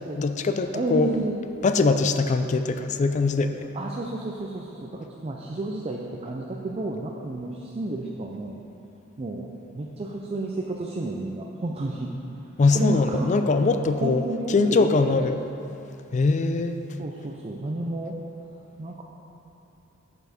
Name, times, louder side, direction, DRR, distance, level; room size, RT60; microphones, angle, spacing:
voice 1, 0.2-1.1 1.6-3.7 12.6-14.2 14.5-15.4 16.1-16.8, left 3 dB, 35° left, 8 dB, 0.4 m, -22 dB
voice 2, 0.7-1.5 3.7-8.6 9.2-12.1 12.7-13.4 14.0-15.3 17.0-18.2 18.8-19.0, right 2 dB, 30° right, -1 dB, 0.4 m, -31 dB
7.9 x 7.0 x 4.2 m, 2.9 s
head